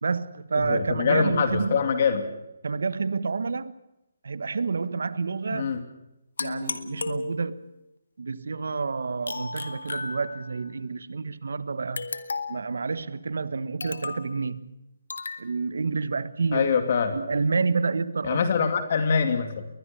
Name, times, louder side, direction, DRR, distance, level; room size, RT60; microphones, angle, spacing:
voice 1, 0.0-1.8 2.6-3.7 4.2-5.7 6.4-7.7 8.2-12.1 12.5-14.7 15.4-16.7 17.1-18.4, right 4 dB, 75° right, 1.4 m, -29 dB
voice 2, 0.6-2.3 5.5-5.8 16.5-17.2 18.2-19.7, left 6 dB, 45° left, 2.4 m, -24 dB
sound 1, 6.4-7.8 9.3-10.7 12.0-12.7 13.8-14.3 15.1-15.4, left 4 dB, 75° left, 2.0 m, -34 dB
21.5 x 21.0 x 6.9 m
hypercardioid pair, 160°, 0 cm